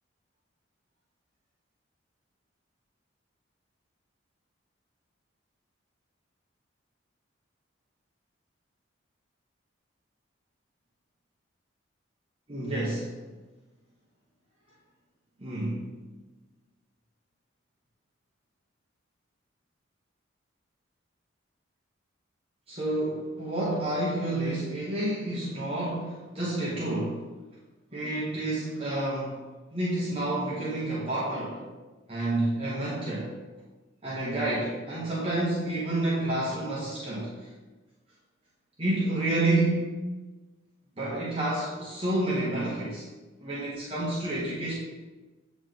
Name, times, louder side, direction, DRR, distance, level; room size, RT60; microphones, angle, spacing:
voice 1, 12.5-13.1 15.4-15.9 22.7-27.2 27.9-29.4 29.7-31.6 32.1-33.4 34.0-37.3 38.8-39.9 41.0-43.1 43.4-44.7, right 1 dB, 30° right, -7 dB, 1.0 m, -29 dB
7.9 x 3.1 x 3.8 m, 1.2 s
head